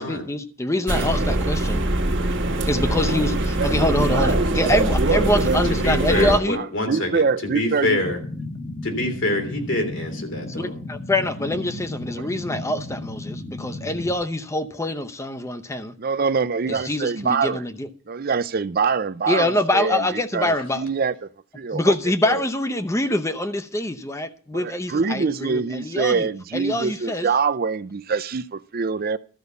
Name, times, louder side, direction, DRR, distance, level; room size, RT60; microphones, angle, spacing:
voice 1, 0.0-1.8 2.7-6.6 10.6-15.9 16.7-17.9 19.3-20.9 21.7-27.3, left 1 dB, 15° left, 0.7 m, -25 dB
sound 1, 0.9-6.4, right 2 dB, 65° right, 1.5 m, -22 dB
voice 2, 5.8-7.2 7.5-8.2 8.8-10.7, left 1 dB, 70° left, 3.1 m, -25 dB
voice 3, 6.6-8.1 12.2-12.3 16.0-17.6 18.1-20.1 20.3-21.1 21.6-21.9 22.3-22.4 24.5-29.2, right 5 dB, 50° right, 0.5 m, -24 dB
sound 2, 8.0-14.1, left 2 dB, 40° left, 1.2 m, -34 dB
13.0 x 5.4 x 8.2 m
head